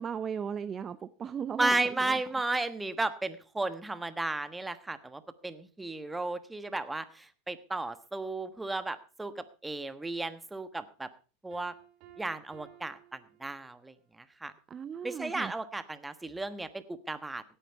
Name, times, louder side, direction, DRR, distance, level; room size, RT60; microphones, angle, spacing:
voice 1, 0.0-2.2 14.7-15.5, right 7 dB, 25° right, 13 dB, 0.5 m, -37 dB
voice 2, 1.6-11.1 11.4-11.7 12.2-13.9 14.4-14.5 15.0-17.4, right 2 dB, 10° right, 11 dB, 1.2 m, -34 dB
Piano, 11.5-14.1, right 11 dB, 55° right, 3.6 m, -56 dB
16.5 x 9.2 x 4.6 m, 0.37 s
hypercardioid pair, 115°, 0 cm